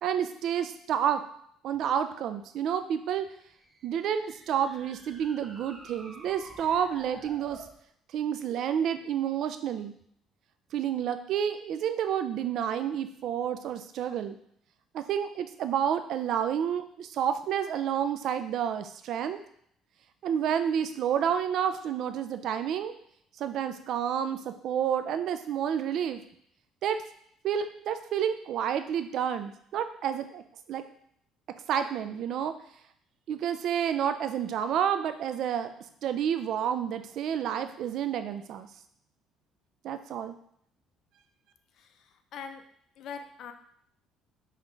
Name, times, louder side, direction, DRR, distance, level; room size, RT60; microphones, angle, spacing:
voice 1, 0.0-1.2 1.6-3.3 3.8-7.6 8.1-9.9 10.7-14.4 14.9-19.4 20.2-22.9 23.4-26.2 26.8-27.0 27.4-30.4 30.7-30.8 31.7-32.5 33.3-35.7 36.0-38.7 39.8-40.4, right 9 dB, 65° right, 9 dB, 0.4 m, -29 dB
sound 1, 3.4-7.8, right 2 dB, 20° right, 0.7 m, -50 dB
voice 2, 41.8-42.6 43.0-43.5, left 6 dB, 65° left, 7 dB, 0.5 m, -42 dB
5.4 x 2.4 x 3.3 m, 0.67 s
supercardioid pair, 80°, 0 cm